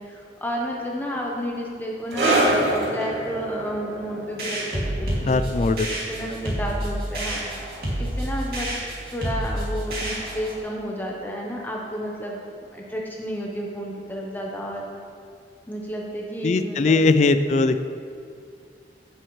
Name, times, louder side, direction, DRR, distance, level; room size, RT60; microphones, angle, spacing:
voice 1, 0.0-5.4 5.8-7.5 8.0-8.7 9.1-12.4 12.7-14.9 15.7-17.1, equal, 10° left, -2 dB, 0.9 m, -31 dB
sound 1, 2.1-9.1 9.4-9.6 10.3-10.4, right 1 dB, 85° right, 2.5 m, -28 dB
sound 2, 4.4-10.6, right 1 dB, 60° right, 2.5 m, -29 dB
voice 2, 5.3-5.9 6.2-6.3 16.4-17.8, left 3 dB, 40° left, 11 dB, 0.3 m, -20 dB
15.5 x 7.9 x 3.2 m, 2.3 s
head